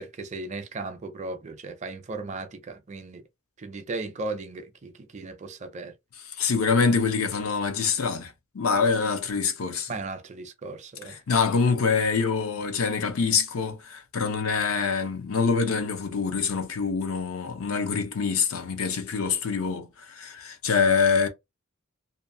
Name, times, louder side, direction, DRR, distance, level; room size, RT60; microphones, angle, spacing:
voice 1, 0.0-3.2 3.6-5.9 9.9-11.2, right 3 dB, 35° right, 0.4 m, -36 dB
voice 2, 6.2-10.0 11.0-21.3, left 5 dB, 85° left, 0.6 m, -25 dB
2.5 x 2.3 x 2.6 m
head